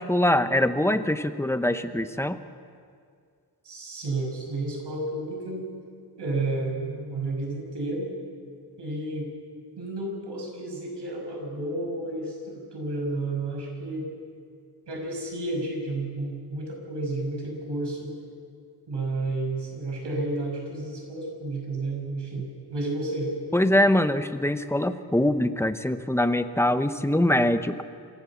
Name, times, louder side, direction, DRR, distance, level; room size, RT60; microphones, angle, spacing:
voice 1, 0.0-2.4 23.5-27.8, left 1 dB, 5° left, 10 dB, 0.8 m, -23 dB
voice 2, 3.6-5.7 6.2-8.1 8.8-9.3 9.8-14.1 14.9-18.1 18.9-23.3, right 2 dB, 85° right, 0 dB, 5.9 m, -31 dB
26.5 x 15.5 x 7.2 m, 2.2 s
wide cardioid pair, 140°, 41 cm